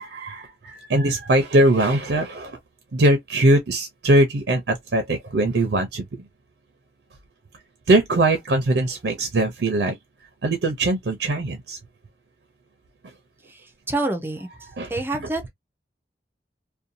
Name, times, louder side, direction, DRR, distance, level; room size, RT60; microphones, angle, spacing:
voice 1, 0.0-2.6 2.9-6.0 7.9-9.9 10.4-11.8 14.8-15.3, right 1 dB, 75° right, 0.5 m, -21 dB
voice 2, 13.9-14.5 14.9-15.5, right 2 dB, 10° right, 0.5 m, -26 dB
2.6 x 2.2 x 2.5 m
head